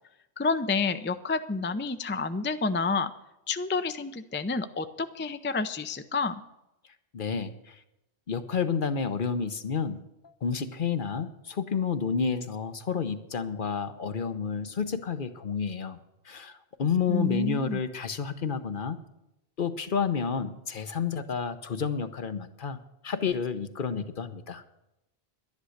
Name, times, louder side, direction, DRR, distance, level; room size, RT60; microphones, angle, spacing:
voice 1, 0.4-3.1 3.5-6.4 17.1-17.8, left 4 dB, 15° left, 10 dB, 0.4 m, -29 dB
voice 2, 7.1-7.8 8.3-10.0 10.4-16.0 16.2-19.0 19.6-22.8 23.0-24.6, left 6 dB, 55° left, 10 dB, 1.0 m, -30 dB
11.5 x 10.5 x 6.5 m, 0.89 s
omnidirectional pair, 1.1 m